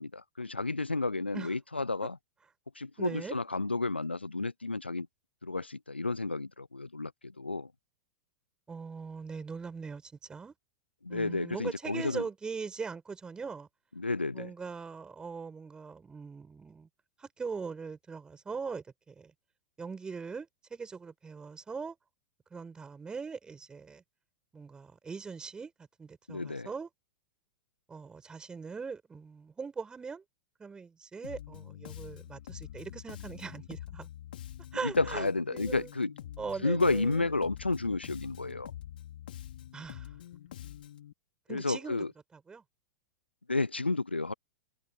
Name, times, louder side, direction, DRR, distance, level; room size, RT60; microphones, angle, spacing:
voice 1, 0.0-2.2 2.8-5.1 5.4-7.7 11.0-12.2 14.0-14.5 26.3-26.7 34.8-36.1 36.6-38.7 41.5-42.1 43.5-44.3, left 3 dB, 90° left, 0.6 m, -31 dB
voice 2, 3.0-3.3 8.7-10.5 11.1-13.7 14.3-16.9 17.2-19.3 19.8-22.0 22.5-24.0 24.5-25.7 26.0-26.9 27.9-30.2 30.6-34.1 34.7-35.9 36.4-37.3 39.7-40.2 41.5-42.0 42.3-42.6, right 5 dB, 15° right, 6.9 m, -41 dB
Bass guitar, 31.2-41.1, left 12 dB, 60° left, 3.1 m, -46 dB
figure-of-eight pair, 100°, 6 cm